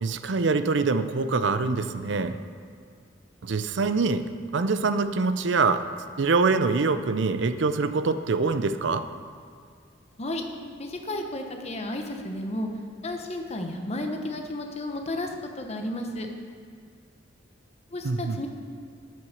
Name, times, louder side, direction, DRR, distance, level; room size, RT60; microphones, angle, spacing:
voice 1, 0.0-2.4 3.4-5.8 6.2-9.0 18.0-18.4, right 4 dB, 70° right, 11 dB, 0.5 m, -24 dB
voice 2, 10.8-12.7 13.0-15.3 15.6-16.3 17.9-18.5, left 1 dB, 35° left, 4 dB, 1.0 m, -32 dB
8.6 x 7.7 x 6.5 m, 2.2 s
head